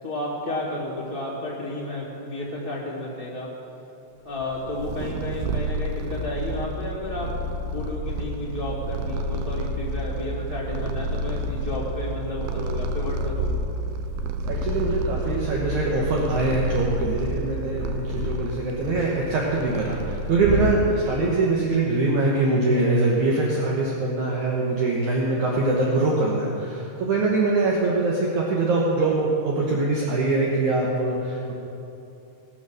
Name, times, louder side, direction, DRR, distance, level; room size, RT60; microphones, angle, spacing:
voice 1, 0.0-3.5 4.2-13.6, left 1 dB, 25° right, -8 dB, 1.2 m, -32 dB
Purr, 4.4-21.2, right 1 dB, 85° right, 2.2 m, -29 dB
voice 2, 14.4-31.5, right 2 dB, 70° right, -3 dB, 1.8 m, -23 dB
18.0 x 7.2 x 6.3 m, 2.8 s
omnidirectional pair, 5.0 m